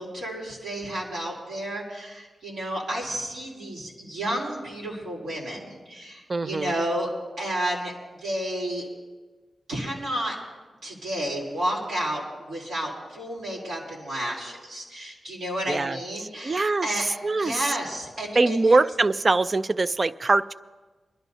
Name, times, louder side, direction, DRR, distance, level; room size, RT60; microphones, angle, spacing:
voice 1, 0.0-7.1 7.4-7.9 8.2-8.9 9.7-10.4 10.8-17.0 17.4-18.8, right 1 dB, 80° right, -3 dB, 3.4 m, -31 dB
voice 2, 6.3-6.7 15.7-17.8 18.4-20.5, right 3 dB, 25° right, 15 dB, 0.3 m, -23 dB
24.0 x 12.0 x 2.7 m, 1.3 s
wide cardioid pair, 170°, 0 cm